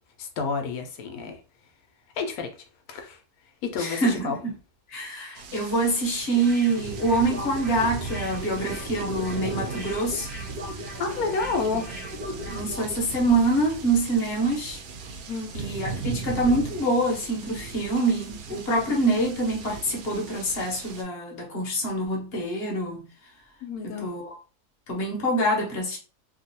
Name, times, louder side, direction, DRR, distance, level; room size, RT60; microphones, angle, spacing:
voice 1, 0.2-1.4 2.2-2.5 2.9-3.2 3.6-4.4 11.0-11.9 15.3-15.5 23.6-24.1, left 4 dB, 70° left, 1.1 m, -29 dB
voice 2, 3.8-4.4 4.9-10.3 12.5-14.8 15.5-23.1 23.8-24.4 24.9-26.0, right 2 dB, 45° left, 0.9 m, -25 dB
sound 1, 5.3-21.0, right 4 dB, 85° right, 1.2 m, -37 dB
sound 2, 6.3-13.0 13.3-13.4, left 1 dB, 5° right, 0.8 m, -39 dB
2.9 x 2.4 x 2.7 m
omnidirectional pair, 1.6 m